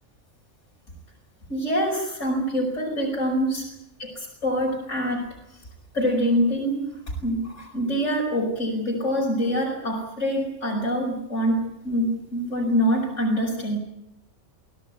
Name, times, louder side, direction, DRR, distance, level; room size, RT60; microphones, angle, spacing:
voice 1, 1.5-3.6 4.0-5.2 5.9-6.8 7.2-13.8, equal, 75° left, -2 dB, 5.9 m, -25 dB
24.0 x 17.0 x 9.4 m, 0.82 s
omnidirectional pair, 1.3 m